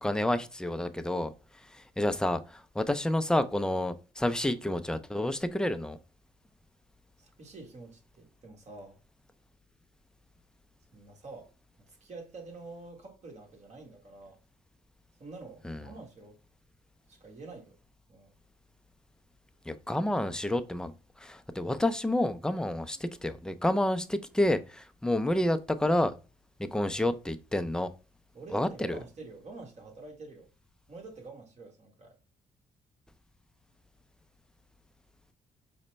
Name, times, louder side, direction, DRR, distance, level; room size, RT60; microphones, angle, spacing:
voice 1, 0.0-1.3 1.6-6.0 15.6-15.8 19.7-26.1 26.6-27.9 28.5-29.0, left 1 dB, 5° left, 0.4 m, -29 dB
voice 2, 7.2-9.0 10.9-11.5 12.0-14.4 15.2-16.4 17.1-17.8 18.1-18.3 28.3-30.5 30.9-32.2, right 3 dB, 50° right, 1.5 m, -47 dB
5.0 x 2.1 x 3.1 m
supercardioid pair, 60°, 15 cm